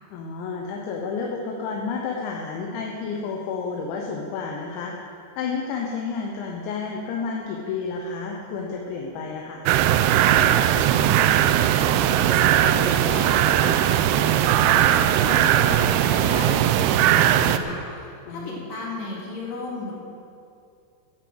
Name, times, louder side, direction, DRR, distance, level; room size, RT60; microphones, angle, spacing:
voice 1, 0.1-4.9 5.4-9.7 18.3-18.7, left 5 dB, 80° left, 0 dB, 3.3 m, -30 dB
sound 1, 9.7-17.6, right 11 dB, 85° right, 2.3 m, -19 dB
voice 2, 10.8-19.9, left 2 dB, 65° left, -5 dB, 5.0 m, -35 dB
11.0 x 10.5 x 7.8 m, 2.5 s
omnidirectional pair, 5.2 m